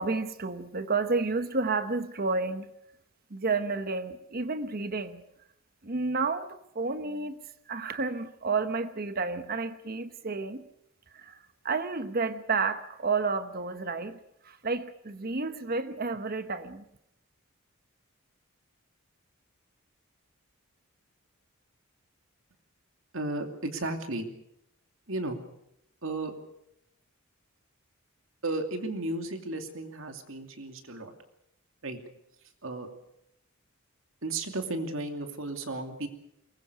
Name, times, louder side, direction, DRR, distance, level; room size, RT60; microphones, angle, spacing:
voice 1, 0.0-2.7 3.3-5.2 5.8-7.4 7.7-10.6 11.1-11.4 11.6-14.2 14.4-16.8, right 4 dB, 45° right, 11 dB, 1.0 m, -31 dB
voice 2, 23.1-24.3 25.1-25.4 26.0-26.3 28.4-31.1 31.8-32.0 32.6-32.9 34.2-36.1, right 2 dB, 65° right, 6 dB, 2.7 m, -34 dB
22.5 x 20.5 x 6.8 m, 0.79 s
head